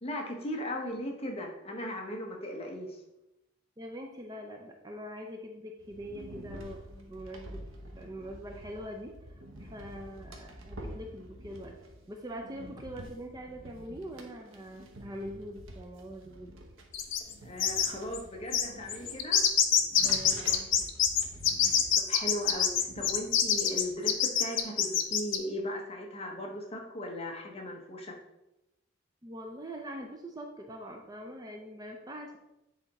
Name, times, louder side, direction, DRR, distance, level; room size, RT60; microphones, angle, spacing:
voice 1, 0.0-3.0 17.4-19.5 21.8-28.2, left 1 dB, 30° left, 1 dB, 1.0 m, -37 dB
voice 2, 3.8-7.6 7.9-9.1 9.6-11.8 12.1-16.5 20.0-20.7 29.2-32.4, equal, 20° right, 2 dB, 0.5 m, -43 dB
sound 1, 5.8-23.9, equal, 80° right, 0.9 m, -48 dB
sound 2, 16.9-17.3 17.6-17.9 18.1-18.2 18.5-25.4, left 8 dB, 65° left, 0.6 m, -25 dB
8.1 x 3.5 x 4.1 m, 0.91 s
head